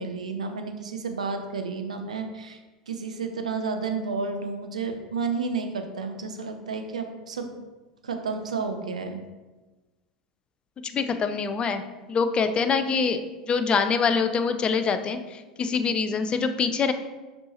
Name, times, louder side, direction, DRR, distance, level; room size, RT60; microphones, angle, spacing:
voice 1, 0.0-2.6 2.9-7.5 8.0-9.2, right 4 dB, 75° right, 6 dB, 0.6 m, -31 dB
voice 2, 10.9-11.8 12.1-16.9, left 5 dB, 25° left, 9 dB, 0.5 m, -25 dB
6.8 x 5.4 x 2.9 m, 1.2 s
figure-of-eight pair, 80°, 4 cm